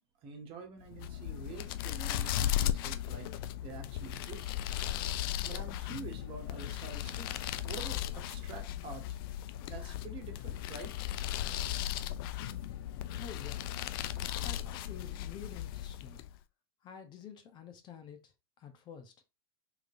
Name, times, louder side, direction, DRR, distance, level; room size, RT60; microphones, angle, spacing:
voice 1, 0.2-3.3 3.6-4.5 5.4-7.4 7.6-9.0 9.7-11.0, right 4 dB, 40° right, 1.3 m, -47 dB
sound 1, 0.9-16.4, left 12 dB, 55° left, 0.4 m, -36 dB
voice 2, 13.1-13.7 14.2-16.2 16.8-18.3 18.6-19.1, left 7 dB, 35° left, 0.8 m, -49 dB
3.8 x 3.1 x 2.5 m
hypercardioid pair, 100°, 14 cm